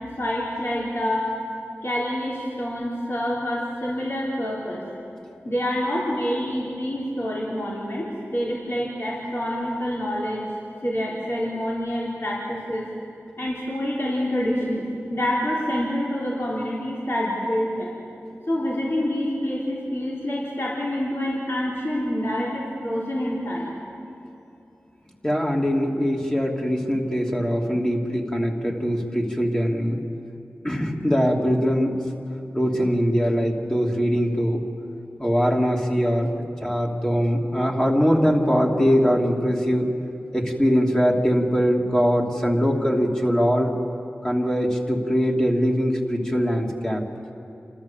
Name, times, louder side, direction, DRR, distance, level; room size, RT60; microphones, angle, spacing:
voice 1, 0.2-1.3 1.8-4.8 5.4-10.5 10.8-12.9 13.4-14.8 15.1-17.9 18.5-23.7, equal, 50° left, -6 dB, 4.1 m, -27 dB
voice 2, 25.2-30.0 30.6-32.0 32.5-34.6 35.2-39.9 40.3-43.8 44.2-47.0, equal, 15° left, -1 dB, 3.0 m, -22 dB
29.0 x 13.5 x 7.3 m, 2.9 s
cardioid pair, 40°, 5 cm